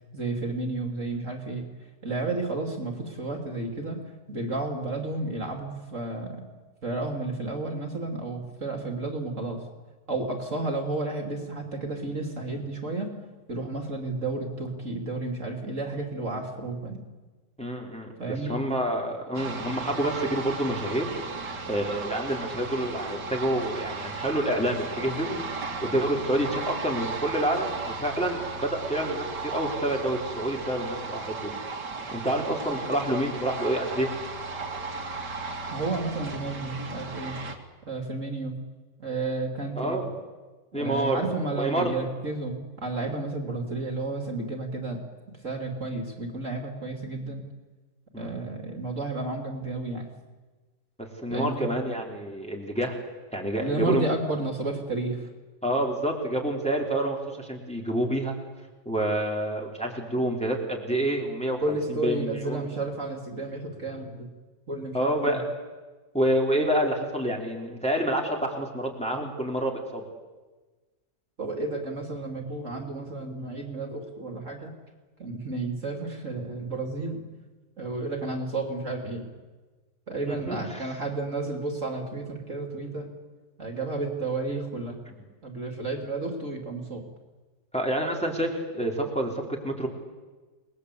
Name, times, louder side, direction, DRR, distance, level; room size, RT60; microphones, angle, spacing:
voice 1, 0.1-1.7 2.0-4.0 4.3-6.4 6.8-9.6 10.1-13.1 13.5-17.0 18.2-18.6 35.7-37.4 37.9-38.6 39.0-40.0 40.7-45.0 45.3-47.4 48.2-50.1 51.3-51.7 53.6-55.3 61.6-64.3 64.7-65.4 71.4-74.7 75.2-77.2 77.8-79.3 80.1-83.1 83.6-85.0 85.4-87.0, right 2 dB, 40° right, 3 dB, 3.3 m, -32 dB
voice 2, 17.6-18.1 18.5-21.1 21.7-25.4 25.8-31.6 32.1-34.1 39.8-40.1 40.7-41.2 41.6-41.9 48.1-48.3 51.0-53.0 53.3-54.1 55.6-58.3 58.9-61.6 61.9-62.7 64.9-65.4 66.1-70.0 80.3-80.9 87.7-89.3 89.6-89.9, right 1 dB, 5° left, -1 dB, 3.9 m, -28 dB
sound 1, 19.3-37.6, right 4 dB, 65° right, 3.0 m, -35 dB
30.0 x 20.5 x 8.3 m, 1.3 s
omnidirectional pair, 2.0 m